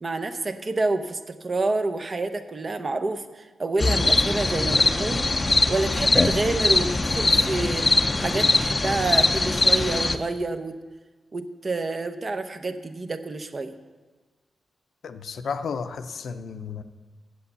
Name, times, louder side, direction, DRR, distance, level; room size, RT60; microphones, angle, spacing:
voice 1, 0.0-7.9 8.2-10.8 11.3-13.7, right 2 dB, 35° right, 8 dB, 0.7 m, -28 dB
sound 1, 3.8-10.2, left 2 dB, 25° left, 0.5 m, -22 dB
voice 2, 15.0-16.8, left 5 dB, 75° left, 9 dB, 0.6 m, -33 dB
8.4 x 7.9 x 6.9 m, 1.3 s
cardioid pair, 100°, 0 cm